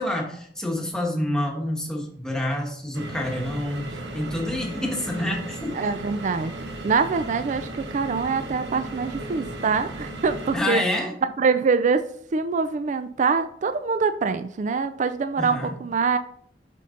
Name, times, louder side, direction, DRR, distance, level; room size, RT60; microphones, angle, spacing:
voice 1, 0.0-5.8 10.5-11.2 15.4-15.8, left 1 dB, 5° left, -1 dB, 1.4 m, -28 dB
sound 1, 2.9-10.6, right 1 dB, 75° right, 1.2 m, -36 dB
voice 2, 5.7-6.5 6.8-10.8 11.4-16.2, right 5 dB, 45° right, 11 dB, 0.4 m, -24 dB
7.6 x 5.3 x 3.8 m, 0.64 s
head